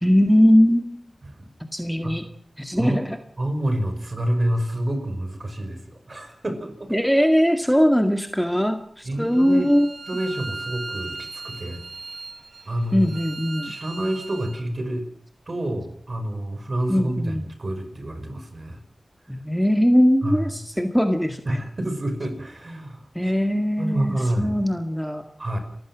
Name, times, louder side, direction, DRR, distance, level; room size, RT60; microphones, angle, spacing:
voice 1, 0.0-1.1 1.7-2.3 2.6-3.2 6.9-9.9 12.9-13.7 16.9-17.5 19.3-21.6 23.2-25.2, equal, ahead, 6 dB, 2.0 m, -20 dB
voice 2, 3.4-6.9 9.1-9.7 10.1-11.8 12.7-13.1 13.6-15.1 15.5-18.8 20.2-20.6 21.5-23.3 23.8-24.6 25.4-25.6, right 1 dB, 45° right, 7 dB, 5.6 m, -28 dB
Bowed string instrument, 9.2-14.6, right 3 dB, 60° right, 3.1 m, -38 dB
29.0 x 15.5 x 6.3 m, 0.64 s
wide cardioid pair, 70°, 0 cm